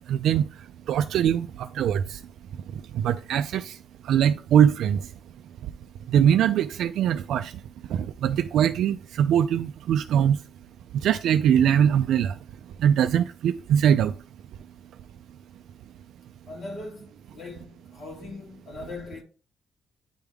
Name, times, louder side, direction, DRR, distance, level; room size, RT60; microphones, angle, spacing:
voice 1, 0.1-0.4 0.9-1.5 1.7-2.2 3.0-3.8 4.1-5.0 6.1-7.5 7.9-10.4 11.0-12.3 12.8-14.1, right 9 dB, 70° right, 0.3 m, -22 dB
voice 2, 16.5-19.2, left 3 dB, 40° left, 2.4 m, -40 dB
9.0 x 3.5 x 3.5 m
cardioid pair, 180°, 0 cm